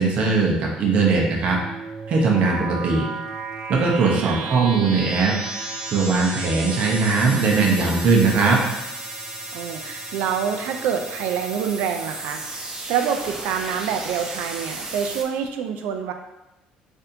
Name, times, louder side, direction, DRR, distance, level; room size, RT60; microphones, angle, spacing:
voice 1, 0.0-1.6 2.1-3.0 3.7-5.4 5.9-8.6, right 4 dB, 50° right, -1 dB, 0.7 m, -19 dB
sound 1, 1.2-15.2, right 3 dB, 20° right, 0.5 m, -33 dB
voice 2, 4.2-4.6 9.5-16.1, right 8 dB, 85° right, 6 dB, 0.4 m, -27 dB
4.1 x 2.6 x 2.7 m, 0.95 s
cardioid pair, 140°, 3 cm